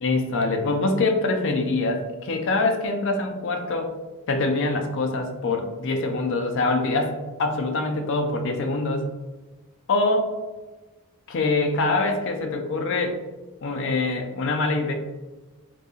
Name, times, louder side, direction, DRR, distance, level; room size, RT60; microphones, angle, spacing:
voice 1, 0.0-3.9 4.3-9.1 9.9-10.3 11.3-13.2 13.6-14.9, left 3 dB, 60° left, 5 dB, 0.4 m, -24 dB
3.9 x 2.7 x 2.4 m, 1.2 s
head